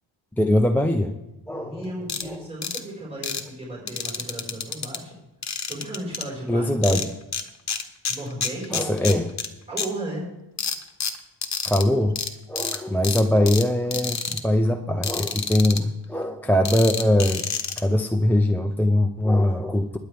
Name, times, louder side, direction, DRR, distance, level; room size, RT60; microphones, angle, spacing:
voice 1, 0.4-1.2 1.5-1.8 2.2-2.4 6.5-7.1 8.7-9.3 11.6-12.2 12.5-17.4 17.8-20.0, left 1 dB, 5° left, 3 dB, 0.5 m, -22 dB
voice 2, 1.5-5.1 5.5-7.1 8.1-9.2 9.7-10.3, right 1 dB, 15° right, -5 dB, 4.8 m, -35 dB
sound 1, 2.1-2.2 2.6-2.8 3.2-3.4 3.9-5.0 5.4-6.2 6.8-7.4 7.7-9.5 9.8-9.9 10.6-11.8 12.2-12.3 12.6-12.8 13.0-13.6 13.9-14.4 15.0-15.8 16.7-17.8, left 6 dB, 35° left, 1.1 m, -28 dB
20.5 x 9.1 x 3.4 m, 0.99 s
wide cardioid pair, 145°, 47 cm